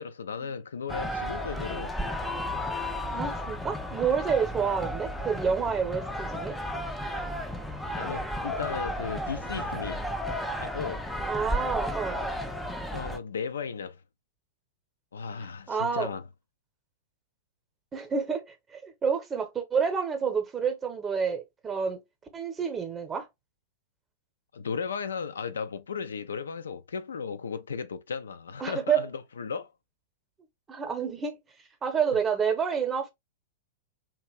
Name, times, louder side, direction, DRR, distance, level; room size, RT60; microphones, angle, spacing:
voice 1, 0.0-2.0 8.0-10.1 10.6-11.1 12.9-14.0 15.1-16.2 24.5-29.7, left 6 dB, 65° left, 0.3 m, -35 dB
sound 1, 0.9-13.2, equal, 5° left, 0.4 m, -33 dB
voice 2, 3.1-6.5 11.3-12.2 15.7-16.1 17.9-22.0 22.3-23.3 28.6-29.0 30.7-31.4 31.8-33.1, right 6 dB, 20° right, 0.8 m, -29 dB
2.8 x 2.4 x 3.2 m
figure-of-eight pair, 100°, 0 cm